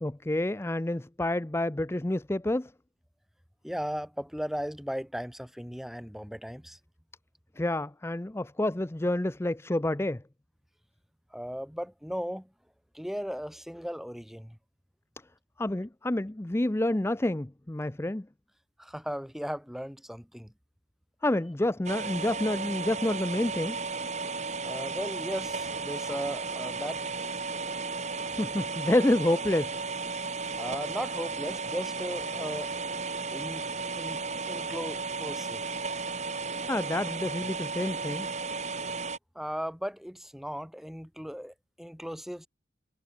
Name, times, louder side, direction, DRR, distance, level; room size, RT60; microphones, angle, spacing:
voice 1, 0.0-2.7 7.6-10.2 15.6-18.3 21.2-23.8 28.2-29.8 36.7-38.3, left 1 dB, 15° left, 0.5 m, -28 dB
voice 2, 3.6-6.8 11.3-12.5 12.9-14.6 18.8-20.5 24.6-27.0 30.6-32.7 33.3-33.6 33.9-34.2 34.5-35.8 39.3-42.5, equal, ahead, 2.4 m, -37 dB
sound 1, 21.9-39.2, right 4 dB, 40° right, 3.5 m, -34 dB
head